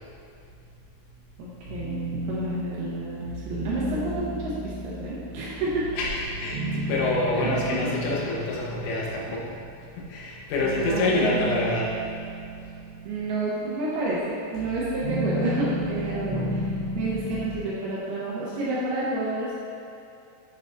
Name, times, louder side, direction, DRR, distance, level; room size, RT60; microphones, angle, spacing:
voice 1, 1.4-2.0 2.3-5.9 7.3-7.8 10.6-11.4 13.1-19.6, right 2 dB, 80° right, -7 dB, 2.3 m, -30 dB
sound 1, 1.6-10.0 10.5-17.6, right 1 dB, 65° right, 2.2 m, -33 dB
voice 2, 5.9-9.5 10.0-11.9, left 2 dB, 80° left, -4 dB, 3.6 m, -27 dB
9.4 x 6.6 x 2.6 m, 2.6 s
omnidirectional pair, 5.7 m